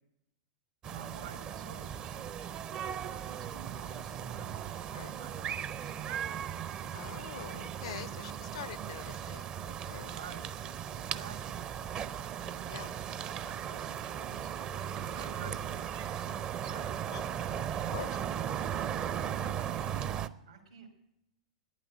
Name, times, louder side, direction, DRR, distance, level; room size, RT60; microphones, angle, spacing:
sound 1, 0.8-20.3, right 9 dB, 30° right, 0.6 m, -37 dB
voice 1, 0.8-2.3 3.2-6.2 7.1-7.2 7.5-8.5 10.0-10.5 10.8-14.5 14.8-16.3 16.6-16.9 17.7-18.0 18.7-20.0 20.5-20.9, right 6 dB, 75° right, 2.5 m, -51 dB
voice 2, 6.9-10.2 12.7-12.9 15.4-15.6 17.1-17.6 17.9-18.2, left 10 dB, 60° left, 0.5 m, -45 dB
11.5 x 9.8 x 9.7 m
figure-of-eight pair, 95°, 3 cm